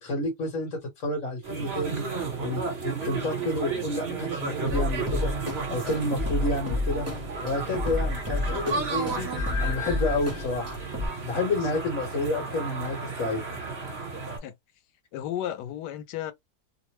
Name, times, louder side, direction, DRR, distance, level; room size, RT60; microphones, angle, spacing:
voice 1, 0.0-2.0 2.4-5.3 5.7-7.1 7.4-9.3 9.6-10.8 11.2-13.4, left 2 dB, 55° left, 1.3 m, -29 dB
sound 1, 1.4-14.4, right 4 dB, 40° right, 1.4 m, -33 dB
sound 2, 4.7-11.1, left 2 dB, 15° right, 0.5 m, -31 dB
voice 2, 15.1-16.3, left 11 dB, 90° left, 1.2 m, -33 dB
2.9 x 2.0 x 3.1 m
omnidirectional pair, 1.8 m